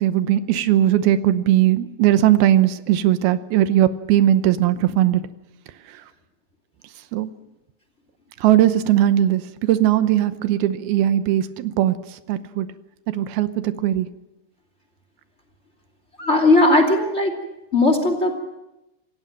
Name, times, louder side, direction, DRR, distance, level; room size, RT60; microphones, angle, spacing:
voice 1, 0.0-5.2 7.1-7.3 8.4-12.7 13.1-14.1, right 12 dB, 85° right, 12 dB, 2.9 m, -19 dB
voice 2, 16.2-17.3 17.7-18.4, left 2 dB, 20° left, 6 dB, 2.6 m, -17 dB
27.0 x 16.5 x 7.6 m, 0.94 s
omnidirectional pair, 4.3 m